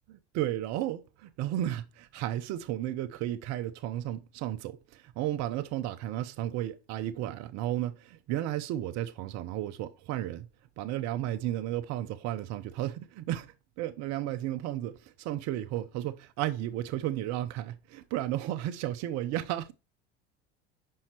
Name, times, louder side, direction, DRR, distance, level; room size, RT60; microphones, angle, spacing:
voice 1, 0.1-10.5 10.8-19.7, right 13 dB, 50° right, 0.8 m, -33 dB
5.7 x 5.5 x 4.5 m
hypercardioid pair, 80°, 33 cm